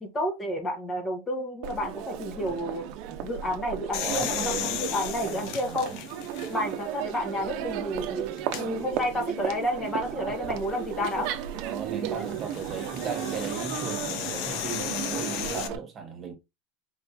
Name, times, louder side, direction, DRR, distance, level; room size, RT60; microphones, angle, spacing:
voice 1, 0.0-2.9 3.2-6.0 6.5-11.4, left 1 dB, 20° left, 1.5 m, -31 dB
Crowd, 1.6-15.8, right 10 dB, 55° right, 0.8 m, -35 dB
sound 1, 3.9-6.8 7.4-7.5 8.4-8.6 10.8-15.7, left 10 dB, 55° left, 0.8 m, -35 dB
voice 2, 3.9-6.0 11.5-16.3, right 6 dB, 30° right, 1.6 m, -37 dB
4.9 x 3.3 x 2.6 m
supercardioid pair, 140°, 0 cm